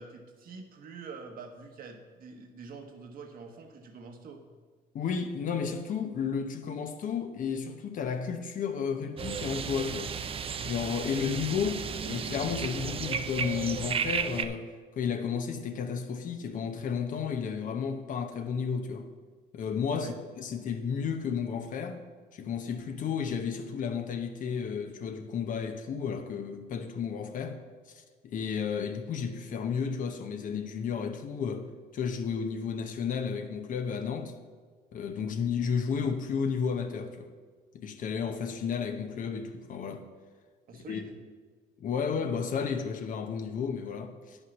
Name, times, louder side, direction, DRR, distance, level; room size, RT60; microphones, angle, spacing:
voice 1, 0.0-4.4 20.0-20.2 40.7-41.2, right 4 dB, 60° right, 1.2 m, -46 dB
voice 2, 4.9-10.1 10.6-14.7 14.9-19.1 19.5-22.0 22.3-27.6 27.9-31.7 31.9-34.3 34.9-37.3 37.7-40.0 40.7-41.0 41.8-44.4, left 6 dB, 50° left, 0.9 m, -32 dB
sound 1, 9.2-14.5, right 6 dB, 35° right, 0.5 m, -34 dB
9.7 x 5.6 x 6.0 m
cardioid pair, 110°, 17 cm